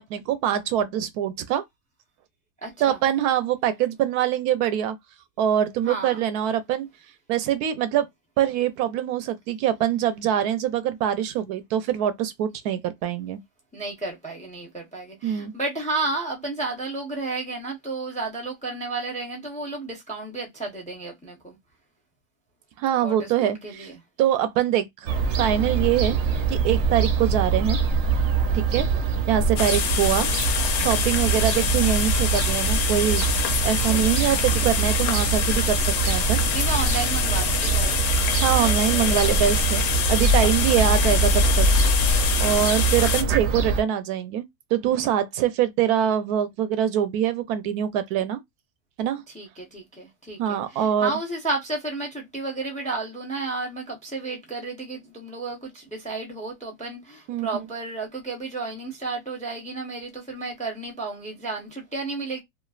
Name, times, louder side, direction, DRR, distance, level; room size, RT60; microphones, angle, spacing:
voice 1, 0.0-1.6 2.8-5.0 5.4-6.9 7.3-8.1 8.4-13.4 15.2-15.5 22.8-23.9 24.2-26.2 26.5-27.8 28.5-28.9 29.3-30.3 30.8-33.2 33.6-35.8 36.1-36.4 38.4-39.8 40.1-41.7 42.4-48.4 49.0-49.2 50.4-51.1 57.3-57.5, right 10 dB, 80° right, 1.1 m, -24 dB
voice 2, 2.6-3.0 5.8-6.2 13.7-21.6 23.0-24.0 28.7-29.1 29.8-30.0 31.3-31.7 33.7-34.1 36.3-38.1 38.6-39.2 40.9-41.1 42.5-42.8 49.3-62.4, right 3 dB, 10° left, 0.5 m, -32 dB
Fowl / Gull seagull, 25.1-43.8, right 4 dB, 60° right, 0.8 m, -23 dB
sound 1, 29.6-43.2, left 8 dB, 80° left, 1.1 m, -26 dB
3.1 x 2.4 x 2.4 m
omnidirectional pair, 1.6 m